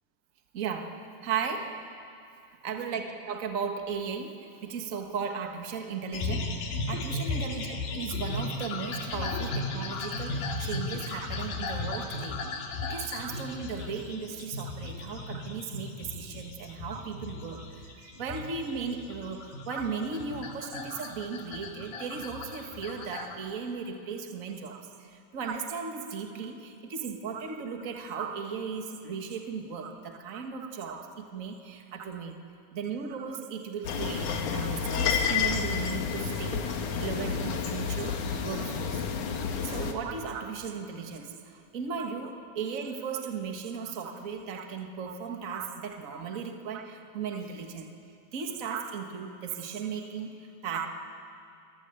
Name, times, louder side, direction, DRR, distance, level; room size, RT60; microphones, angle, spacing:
voice 1, 0.5-0.9 1.2-1.7 2.6-12.4 12.8-32.4 32.7-39.0 39.6-47.9 48.3-50.9, right 6 dB, 65° right, 4 dB, 0.8 m, -36 dB
sound 1, 6.1-23.4, left 3 dB, 80° left, 3.9 m, -36 dB
sound 2, 33.8-39.9, left 6 dB, 60° left, 2.7 m, -30 dB
23.5 x 21.0 x 8.8 m, 2.5 s
omnidirectional pair, 4.1 m